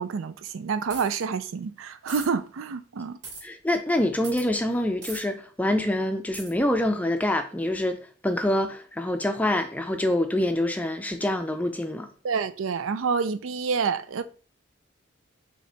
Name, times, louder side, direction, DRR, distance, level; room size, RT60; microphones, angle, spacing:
voice 1, 0.0-3.2 12.2-14.2, right 5 dB, 85° right, 0.4 m, -28 dB
sound 1, 0.9-1.2 2.1-2.3 3.2-3.4 4.2-4.5 5.0-5.2 6.3-6.5, right 3 dB, 60° right, 2.3 m, -38 dB
voice 2, 3.4-8.0 8.2-12.1, left 1 dB, 10° left, 0.4 m, -26 dB
5.1 x 2.9 x 3.4 m
head